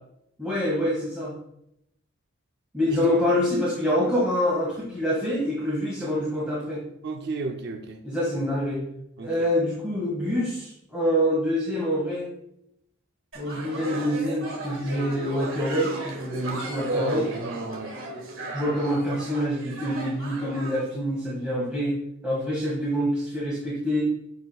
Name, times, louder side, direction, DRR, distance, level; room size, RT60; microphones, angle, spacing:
voice 1, 0.4-1.3 2.7-6.8 8.0-8.8 9.2-12.3 13.3-17.3 18.5-24.0, equal, 5° right, -7 dB, 1.8 m, -26 dB
voice 2, 7.0-8.0 9.2-9.4 16.8-17.9, right 3 dB, 55° right, 4 dB, 0.6 m, -32 dB
sound 1, 13.3-20.9, right 2 dB, 75° right, 1.8 m, -36 dB
11.5 x 5.4 x 2.3 m, 0.78 s
head